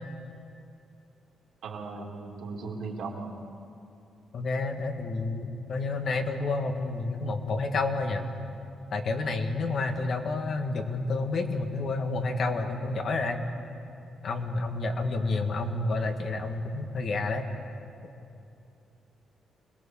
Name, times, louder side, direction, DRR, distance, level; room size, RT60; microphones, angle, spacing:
voice 1, 1.6-3.4 15.1-15.6, right 4 dB, 75° right, 0 dB, 3.0 m, -38 dB
voice 2, 4.3-8.3 8.9-13.4 14.2-17.5, left 3 dB, 55° left, 4 dB, 2.0 m, -29 dB
26.0 x 19.0 x 7.3 m, 2.7 s
cardioid pair, 110°, 0 cm